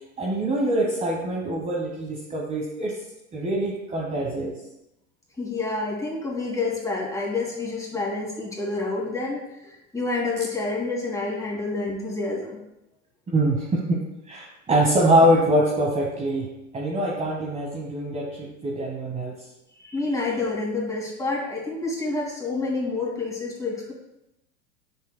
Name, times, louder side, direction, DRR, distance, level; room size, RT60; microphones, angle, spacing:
voice 1, 0.2-3.0 3.3-4.5 13.3-14.0 14.3-19.3, right 1 dB, 20° right, -3 dB, 1.1 m, -24 dB
voice 2, 5.4-12.6 19.8-23.9, left 3 dB, 10° left, -3 dB, 2.3 m, -28 dB
7.0 x 6.6 x 2.2 m, 0.88 s
hypercardioid pair, 95°, 37 cm